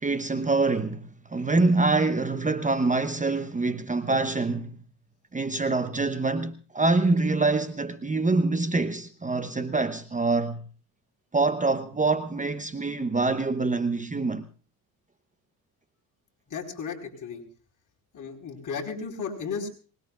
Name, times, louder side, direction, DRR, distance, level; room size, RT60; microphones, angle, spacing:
voice 1, 0.0-4.8 5.3-10.6 11.3-14.5, right 3 dB, 20° right, 0.9 m, -25 dB
voice 2, 16.5-17.4 18.1-19.7, left 5 dB, 45° left, 4.7 m, -34 dB
24.5 x 20.5 x 2.4 m
cardioid pair, 100°, 41 cm